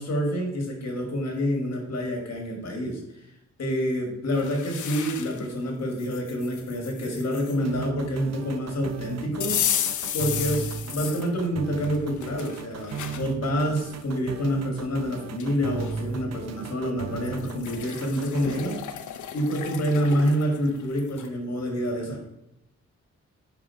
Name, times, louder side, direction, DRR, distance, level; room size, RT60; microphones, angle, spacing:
voice 1, 0.0-3.0 3.6-18.8 19.3-22.3, equal, 60° left, 1 dB, 1.8 m, -27 dB
sound 1, 4.3-5.5 6.0-7.6 9.4-11.3 11.8-13.3 13.8-13.9 15.0-15.1 15.4-16.0 17.2-21.3, left 10 dB, 85° left, 0.6 m, -33 dB
sound 2, 7.6-18.6, right 6 dB, 60° right, 0.6 m, -36 dB
6.2 x 5.4 x 4.4 m, 0.82 s
wide cardioid pair, 180°, 29 cm